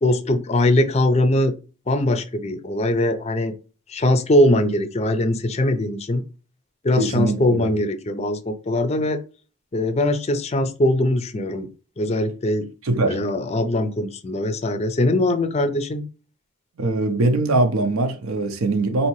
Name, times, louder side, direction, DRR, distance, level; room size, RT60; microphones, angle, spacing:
voice 1, 0.0-1.5 1.9-3.6 3.9-6.2 6.8-9.2 9.7-11.7 12.0-12.7 13.1-16.0, left 1 dB, 30° left, 0.4 m, -21 dB
voice 2, 6.9-7.7 12.8-13.2 16.8-19.1, right 2 dB, 85° right, 0.6 m, -22 dB
4.3 x 2.7 x 3.0 m
head